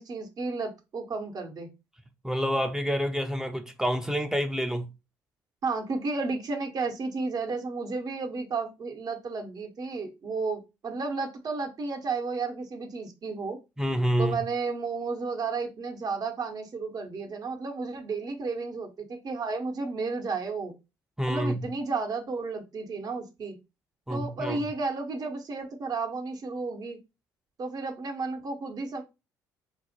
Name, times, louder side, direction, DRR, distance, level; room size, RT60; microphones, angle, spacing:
voice 1, 0.0-1.7 5.6-13.6 14.2-20.7 21.3-23.6 24.1-27.0 27.6-29.0, right 4 dB, 45° right, 0.8 m, -32 dB
voice 2, 2.2-4.9 13.8-14.4 21.2-21.6 24.1-24.6, equal, 5° right, 0.5 m, -28 dB
3.8 x 2.0 x 2.7 m
hypercardioid pair, 55°, 9 cm